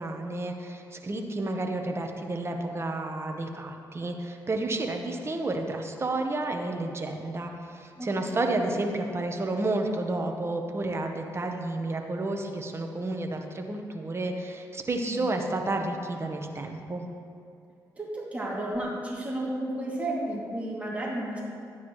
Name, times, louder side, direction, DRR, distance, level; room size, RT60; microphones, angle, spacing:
voice 1, 0.0-17.1, right 2 dB, 35° right, 3 dB, 1.1 m, -31 dB
voice 2, 8.0-8.6 15.0-15.3 18.0-21.4, right 1 dB, 20° right, -5 dB, 2.6 m, -33 dB
12.0 x 9.2 x 3.2 m, 2.5 s
supercardioid pair, 60°, 8 cm